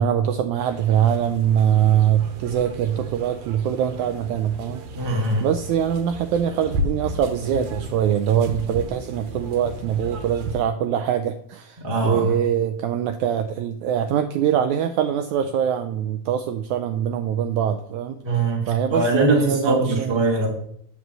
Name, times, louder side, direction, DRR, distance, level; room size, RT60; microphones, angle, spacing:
voice 1, 0.0-4.8 5.4-18.2 18.7-20.1, right 9 dB, 80° right, 8 dB, 1.7 m, -23 dB
sound 1, 0.7-10.6, equal, 65° right, 2.3 m, -34 dB
voice 2, 4.9-5.5 11.8-12.4 18.2-20.5, right 2 dB, 15° right, 1 dB, 1.0 m, -22 dB
8.6 x 5.4 x 7.5 m, 0.69 s
omnidirectional pair, 3.9 m